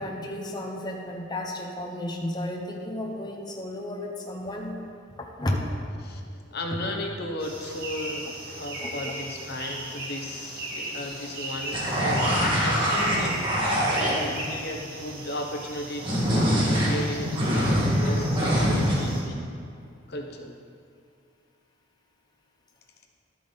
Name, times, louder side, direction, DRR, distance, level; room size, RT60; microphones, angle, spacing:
voice 1, 0.0-4.8 5.2-5.7 6.7-6.8 8.8-8.9, left 1 dB, 20° left, 0 dB, 1.0 m, -32 dB
voice 2, 6.5-19.4 20.1-20.5, left 1 dB, 60° left, 2 dB, 1.1 m, -35 dB
sound 1, 7.4-19.2, right 1 dB, 55° right, 2.2 m, -37 dB
sound 2, 11.7-14.4 16.0-19.0, equal, 25° right, 2.1 m, -24 dB
12.0 x 9.0 x 4.1 m, 2.3 s
head